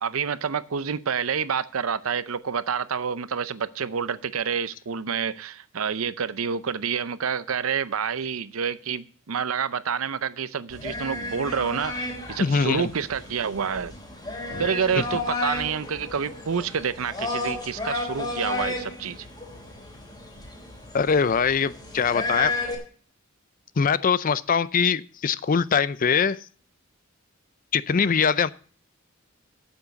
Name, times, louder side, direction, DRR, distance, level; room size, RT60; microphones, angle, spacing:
voice 1, 0.0-13.9 14.6-19.3, right 6 dB, 90° right, 0.6 m, -28 dB
sound 1, 10.7-22.7, left 2 dB, 20° left, 3.5 m, -32 dB
voice 2, 12.4-12.9 15.0-15.1 20.9-22.5 23.8-26.4 27.7-28.5, left 6 dB, 40° left, 0.5 m, -22 dB
9.0 x 7.4 x 8.1 m
head